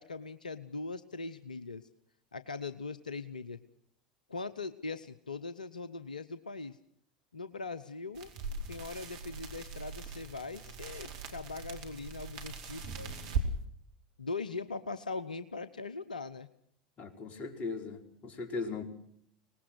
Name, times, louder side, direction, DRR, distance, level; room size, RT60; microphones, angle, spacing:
voice 1, 0.0-1.9 2.3-3.6 4.3-6.8 7.3-8.3 8.7-13.1 14.2-16.5, left 3 dB, 90° left, 14 dB, 0.8 m, -40 dB
sound 1, 8.1-13.5, right 4 dB, 65° right, 4.4 m, -40 dB
voice 2, 17.0-18.8, left 4 dB, 35° left, 4 dB, 5.0 m, -38 dB
25.0 x 19.5 x 6.3 m, 0.66 s
figure-of-eight pair, 80°, 4 cm